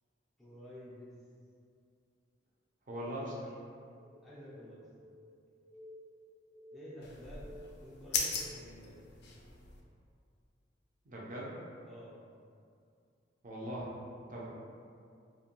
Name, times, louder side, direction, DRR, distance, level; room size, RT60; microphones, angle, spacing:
voice 1, 0.4-1.1 4.2-4.8 5.1-5.2 6.7-7.5 7.8-9.0 11.8-12.2 13.8-13.9 14.3-14.5, equal, ahead, -8 dB, 0.5 m, -51 dB
voice 2, 2.9-3.3 11.1-11.5 13.4-13.9 14.3-14.5, right 1 dB, 45° right, -5 dB, 0.6 m, -40 dB
sound 1, 3.9-8.8, left 1 dB, 85° right, 0.9 m, -55 dB
sound 2, 7.0-9.8, left 4 dB, 60° left, 0.4 m, -39 dB
2.5 x 2.1 x 2.9 m, 2.3 s
head